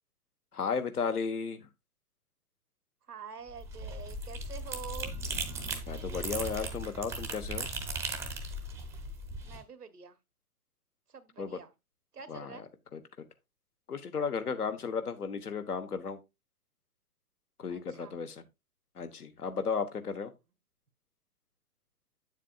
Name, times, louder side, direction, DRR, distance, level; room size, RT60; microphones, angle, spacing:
voice 1, 0.5-1.6 5.9-7.7 11.4-11.6 12.3-12.6 12.9-13.0 13.9-16.2 17.6-18.4 18.9-20.3, left 5 dB, 75° left, 1.4 m, -34 dB
voice 2, 3.1-5.1 9.4-10.2 11.1-11.7 12.1-12.6 17.7-18.1, right 6 dB, 80° right, 1.2 m, -46 dB
sound 1, 3.5-9.6, right 2 dB, 5° right, 0.7 m, -37 dB
8.7 x 7.3 x 2.4 m
figure-of-eight pair, 115°, 45 cm